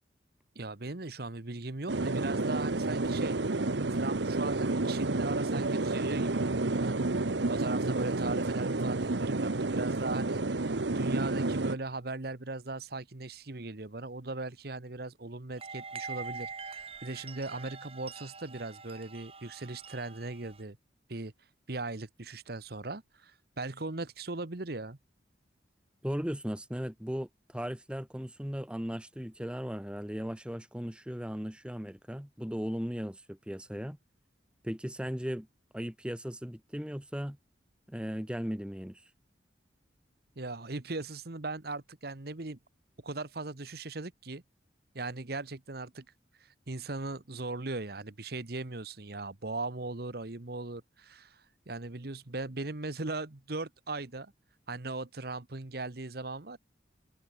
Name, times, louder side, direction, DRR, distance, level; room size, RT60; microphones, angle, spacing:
voice 1, 0.5-3.4 3.9-20.8 21.1-21.3 21.7-25.0 40.4-42.6 43.0-44.4 44.9-46.0 46.4-54.3 54.7-56.6, right 2 dB, 55° right, 1.2 m, -39 dB
xenia tornado, 1.9-11.7, right 2 dB, 75° right, 1.1 m, -30 dB
sound 1, 15.6-20.6, right 5 dB, 30° right, 4.1 m, -44 dB
voice 2, 26.0-34.0 34.6-35.5 35.7-37.4 37.9-39.0, equal, 5° right, 1.1 m, -37 dB
open air
head